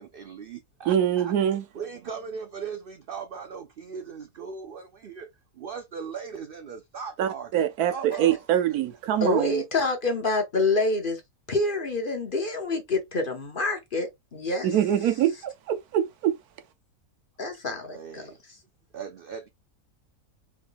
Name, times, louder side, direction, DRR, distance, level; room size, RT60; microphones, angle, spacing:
voice 1, 0.0-1.3 1.7-5.3 5.5-7.6 7.9-8.4 17.9-18.4 18.9-19.5, right 6 dB, 60° right, 0.5 m, -38 dB
voice 2, 0.9-1.6 7.2-9.6 14.6-16.3, right 10 dB, 80° right, 1.2 m, -24 dB
voice 3, 9.2-11.2 11.5-14.7 17.4-18.3, left 2 dB, 40° left, 1.0 m, -27 dB
4.7 x 3.5 x 2.2 m
omnidirectional pair, 1.6 m